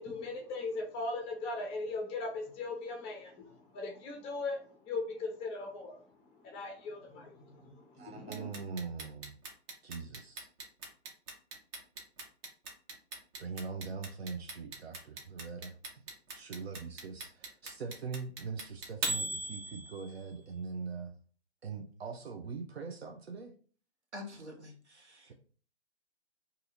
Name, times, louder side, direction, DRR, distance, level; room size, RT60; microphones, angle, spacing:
voice 1, 0.0-6.0 6.4-8.6, left 3 dB, 15° left, 2 dB, 0.6 m, -39 dB
voice 2, 8.0-9.3 9.8-10.5 13.4-16.0 16.3-21.1 21.6-23.5, right 5 dB, 65° right, 3 dB, 0.6 m, -42 dB
Clock, 8.3-20.3, right 2 dB, 20° right, 0.6 m, -39 dB
voice 3, 24.1-25.3, left 2 dB, 90° right, 0 dB, 1.3 m, -47 dB
2.7 x 2.7 x 3.9 m, 0.42 s
figure-of-eight pair, 125°, 34 cm